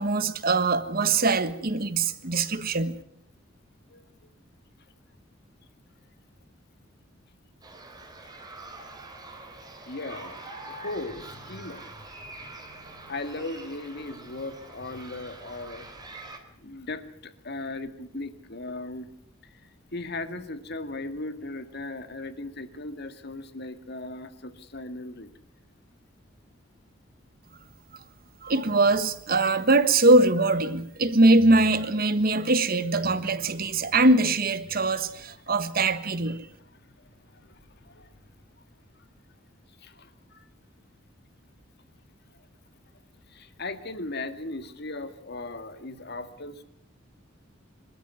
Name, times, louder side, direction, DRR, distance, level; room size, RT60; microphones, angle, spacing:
voice 1, 0.0-2.9 28.4-36.5, right 2 dB, 50° right, 1.5 m, -22 dB
voice 2, 3.9-4.3 9.9-15.9 16.6-19.1 19.4-25.3 33.3-33.9 34.7-35.2 36.7-38.2 39.0-39.1 39.7-40.5 43.3-46.6, left 2 dB, 55° left, 2.0 m, -38 dB
sound 1, 7.6-16.4, right 2 dB, 20° right, 3.7 m, -45 dB
25.5 x 13.5 x 9.5 m
head